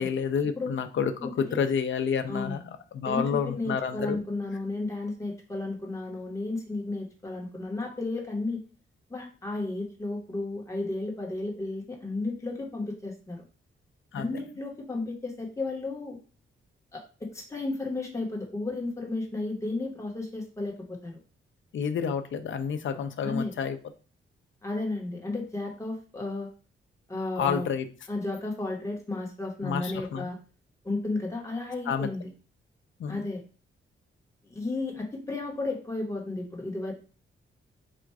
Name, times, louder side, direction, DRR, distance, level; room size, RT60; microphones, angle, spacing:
voice 1, 0.0-4.2 14.1-14.3 21.7-23.8 27.4-27.9 29.6-30.3 31.9-32.1 33.0-33.2, left 7 dB, 65° left, 8 dB, 0.6 m, -29 dB
voice 2, 3.0-8.6 9.1-13.4 14.1-16.2 16.9-21.2 23.2-23.5 24.6-26.5 27.1-27.7 28.1-30.4 30.8-32.3 33.1-33.4 34.4-36.9, left 2 dB, 15° left, -1 dB, 1.2 m, -33 dB
4.3 x 2.5 x 4.6 m, 0.36 s
wide cardioid pair, 155°, 21 cm